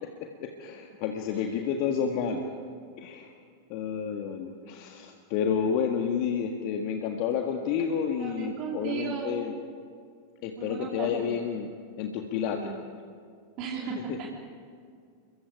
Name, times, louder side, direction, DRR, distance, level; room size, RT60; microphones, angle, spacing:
voice 1, 0.0-2.5 3.0-3.3 3.7-9.5 10.4-11.7 12.0-12.7 13.8-14.2, left 7 dB, 45° left, 4 dB, 1.6 m, -30 dB
voice 2, 2.2-2.6 8.2-9.4 10.6-11.1 12.5-12.8 13.6-14.3, right 6 dB, 40° right, -2 dB, 3.3 m, -36 dB
29.0 x 22.5 x 5.0 m, 2.2 s
figure-of-eight pair, 90°, 0 cm